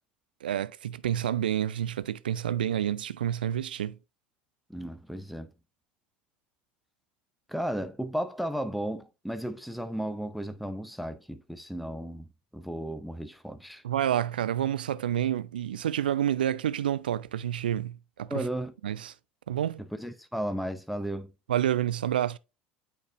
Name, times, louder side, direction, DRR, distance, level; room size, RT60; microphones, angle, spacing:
voice 1, 0.4-4.0 13.8-18.5 18.8-19.1 19.5-19.9 21.5-22.4, right 10 dB, 85° right, 0.3 m, -29 dB
voice 2, 4.7-5.5 7.5-12.3 12.5-13.8 18.3-18.7 19.8-21.3, right 1 dB, ahead, 0.7 m, -34 dB
8.7 x 4.8 x 2.4 m
hypercardioid pair, 70°, 5 cm